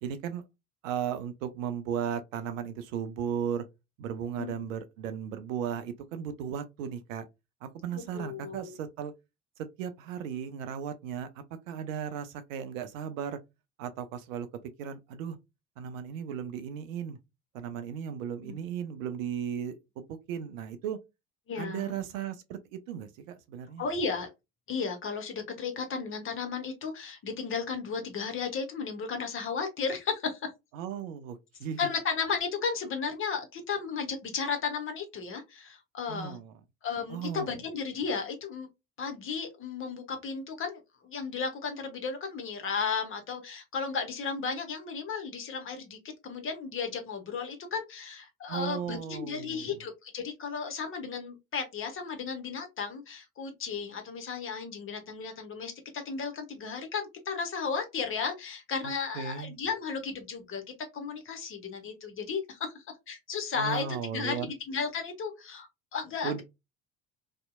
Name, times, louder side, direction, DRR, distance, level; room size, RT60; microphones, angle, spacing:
voice 1, 0.0-0.4 0.8-3.6 4.0-7.2 7.6-9.1 9.8-13.4 13.8-14.5 14.8-15.4 15.8-17.2 17.5-19.8 20.3-21.0 21.6-23.8 30.7-31.8 36.1-36.5 37.1-37.6 48.5-49.7 58.8-59.5 63.6-64.5 66.2-66.4, right 8 dB, 60° right, 0.5 m, -36 dB
voice 2, 7.9-8.7 18.4-18.6 21.5-22.1 23.8-24.3 24.7-30.5 31.8-36.4 36.8-38.7 39.0-46.0 46.2-60.6 60.9-66.4, left 5 dB, 30° left, 0.7 m, -34 dB
2.7 x 2.0 x 2.3 m
figure-of-eight pair, 55°, 45 cm